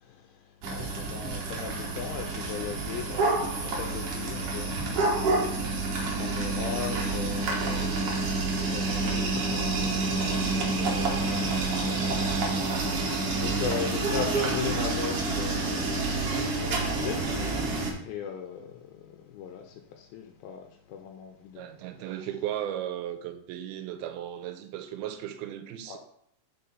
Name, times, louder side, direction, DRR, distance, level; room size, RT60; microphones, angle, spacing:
voice 1, 0.0-21.7 22.2-22.3 25.9-26.0, left 7 dB, 85° left, 2.4 m, -39 dB
sound 1, 0.6-17.9, right 3 dB, 60° right, 1.6 m, -28 dB
voice 2, 21.6-26.0, right 11 dB, 80° right, 2.5 m, -36 dB
5.6 x 4.6 x 5.4 m
omnidirectional pair, 4.4 m